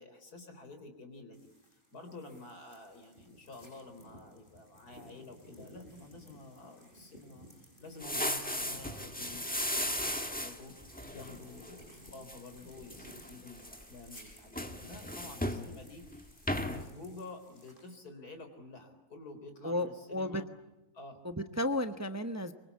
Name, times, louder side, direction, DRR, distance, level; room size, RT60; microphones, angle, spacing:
voice 1, 0.0-1.5 1.9-20.5 20.9-21.2, left 2 dB, 80° left, 7 dB, 4.4 m, -50 dB
sound 1, 1.3-17.9, equal, 35° left, 6.9 m, -57 dB
sound 2, 8.0-11.7 12.1-12.4 12.8-13.8 14.1-15.7 16.0-16.2 16.5-16.8, left 1 dB, 5° left, 1.6 m, -36 dB
voice 2, 19.6-20.4 21.2-22.5, left 1 dB, 15° right, 8 dB, 0.9 m, -33 dB
25.0 x 24.0 x 8.5 m, 0.97 s
omnidirectional pair, 1.6 m